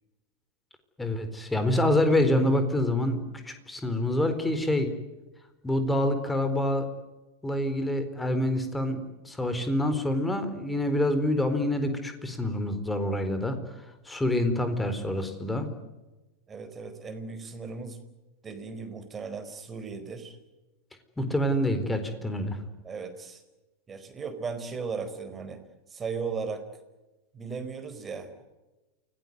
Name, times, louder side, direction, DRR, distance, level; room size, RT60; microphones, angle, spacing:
voice 1, 1.0-4.9 5.6-6.9 7.4-13.6 14.1-15.7 21.2-22.6, left 1 dB, 10° left, 9 dB, 4.2 m, -26 dB
voice 2, 16.5-18.0 18.4-20.4 22.8-23.4 23.9-25.6 25.9-26.6 27.3-28.4, right 5 dB, 20° right, 8 dB, 4.5 m, -36 dB
29.0 x 19.0 x 9.5 m, 1.1 s
figure-of-eight pair, 90°, 0 cm